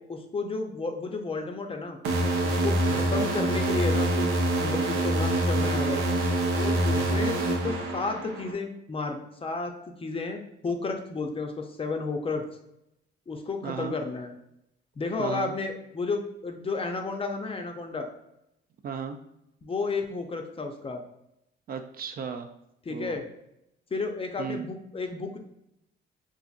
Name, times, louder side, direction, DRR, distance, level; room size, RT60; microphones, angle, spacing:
voice 1, 0.1-2.0 2.4-4.3 4.6-6.0 6.5-9.7 10.0-12.4 13.3-14.3 15.0-18.1 19.6-21.0 22.9-23.2 23.9-25.4, left 3 dB, 30° left, 4 dB, 0.5 m, -32 dB
sound 1, 2.0-8.5, right 1 dB, 85° right, 0.6 m, -25 dB
voice 2, 6.9-7.3 13.6-14.0 15.2-15.6 18.8-19.2 21.7-22.5 22.9-23.2 24.4-24.7, right 6 dB, 50° right, 7 dB, 0.4 m, -35 dB
4.0 x 2.5 x 2.4 m, 0.83 s
cardioid pair, 90°, 20 cm